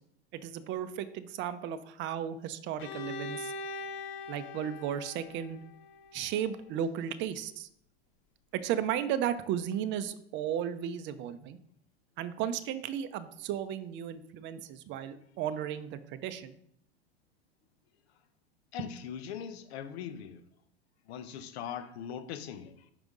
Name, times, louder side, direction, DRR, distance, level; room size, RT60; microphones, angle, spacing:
voice 1, 0.3-3.5 4.3-5.6 6.1-7.7 8.5-11.6 12.2-16.5, right 9 dB, 35° right, 0.5 m, -34 dB
Bowed string instrument, 2.8-6.6, left 3 dB, 35° left, 0.5 m, -42 dB
voice 2, 18.7-20.4 21.1-22.9, left 8 dB, 65° left, 0.8 m, -41 dB
5.2 x 5.0 x 3.6 m
hypercardioid pair, 105°, 34 cm